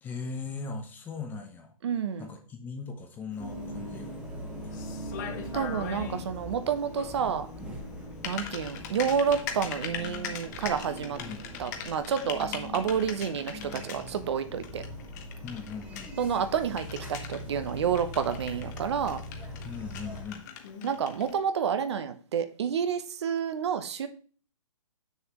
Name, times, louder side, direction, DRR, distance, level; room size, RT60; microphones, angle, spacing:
voice 1, 0.0-1.7 2.2-4.1 4.6-5.0 11.2-11.5 15.4-16.1 19.6-20.5, left 5 dB, 10° left, 5 dB, 0.7 m, -39 dB
voice 2, 1.8-2.3 5.5-7.5 8.2-11.2 11.6-14.8 16.2-19.2 20.8-24.1, right 7 dB, 50° right, 10 dB, 0.9 m, -29 dB
Typing, 3.3-21.4, left 7 dB, 30° left, 1.1 m, -42 dB
sound 1, 3.4-20.2, equal, 5° right, 1.2 m, -41 dB
7.2 x 6.6 x 3.0 m, 0.41 s
hypercardioid pair, 155°, 17 cm